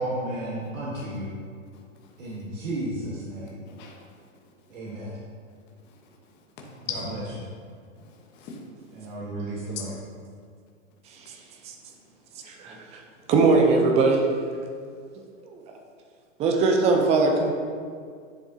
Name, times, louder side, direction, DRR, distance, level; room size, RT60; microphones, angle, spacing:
voice 1, 0.0-1.4 2.2-3.6 4.7-5.2 6.9-7.2 8.9-9.9, right 1 dB, 75° right, -6 dB, 1.5 m, -33 dB
voice 2, 1.7-2.4 3.7-4.0 5.8-6.0 6.9-7.1 8.0-8.6, left 6 dB, 25° left, -1 dB, 1.0 m, -40 dB
voice 3, 12.5-13.0 13.3-14.2 15.4-15.6 16.4-17.5, right 3 dB, 15° right, 2 dB, 0.5 m, -21 dB
10.5 x 3.5 x 2.7 m, 2.1 s
hypercardioid pair, 135°, 39 cm